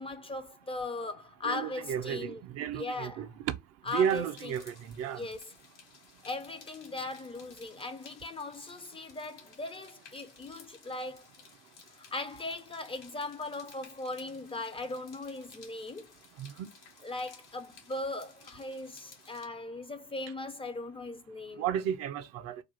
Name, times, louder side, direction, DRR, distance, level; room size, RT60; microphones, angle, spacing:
voice 1, 0.0-2.4 2.8-3.2 3.9-4.5 5.1-5.4 6.2-11.3 12.0-16.1 17.0-21.6, left 2 dB, 15° left, 0.4 m, -39 dB
voice 2, 1.4-3.5 3.9-5.2 16.4-16.7 21.6-22.6, right 9 dB, 45° right, 0.4 m, -33 dB
sound 1, 3.9-19.5, left 5 dB, 80° left, 0.9 m, -57 dB
2.4 x 2.3 x 3.9 m
figure-of-eight pair, 55°, 34 cm